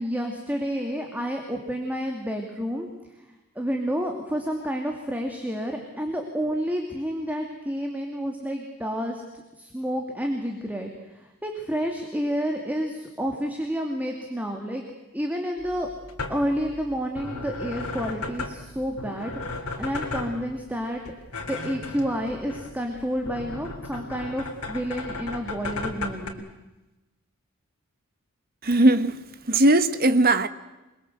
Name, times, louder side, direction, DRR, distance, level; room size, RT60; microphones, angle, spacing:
voice 1, 0.0-3.3 3.5-9.2 9.6-14.8 15.1-15.9 16.3-21.0 21.4-26.5, equal, 5° right, 2.6 m, -30 dB
sound 1, 15.6-26.3, left 3 dB, 80° left, 3.5 m, -36 dB
voice 2, 28.6-29.2 29.5-30.5, right 1 dB, 40° right, 1.3 m, -19 dB
28.5 x 21.5 x 8.0 m
head